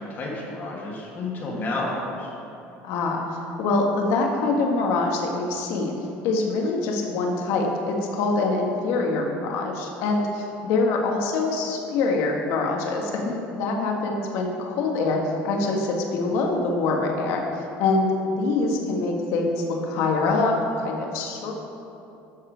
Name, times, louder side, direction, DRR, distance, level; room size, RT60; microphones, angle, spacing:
voice 1, 0.0-2.3, left 2 dB, 40° left, -4 dB, 1.7 m, -30 dB
voice 2, 2.8-6.0 6.2-15.2 15.4-17.4 17.8-21.5, left 3 dB, 75° left, 1 dB, 1.5 m, -24 dB
12.0 x 5.6 x 5.0 m, 2.9 s
cardioid pair, 130°, 5 cm